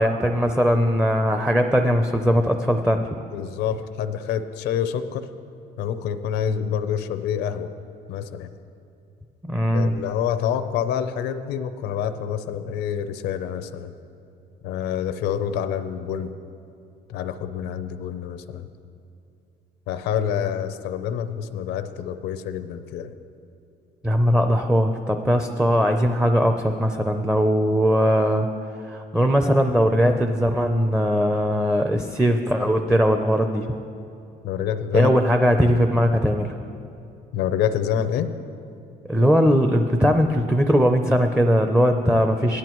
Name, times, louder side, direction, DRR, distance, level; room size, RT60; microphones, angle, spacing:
voice 1, 0.0-3.1 9.4-10.0 24.0-28.5 28.8-33.8 34.9-36.5 39.1-42.6, equal, 5° right, 6 dB, 0.5 m, -20 dB
voice 2, 3.3-5.3 5.8-7.7 8.1-8.5 9.7-13.9 14.6-16.3 17.1-18.7 19.9-23.1 34.4-35.1 37.3-38.3, left 8 dB, 85° left, 10 dB, 0.6 m, -27 dB
16.0 x 11.0 x 3.0 m, 2.6 s
cardioid pair, 110°, 17 cm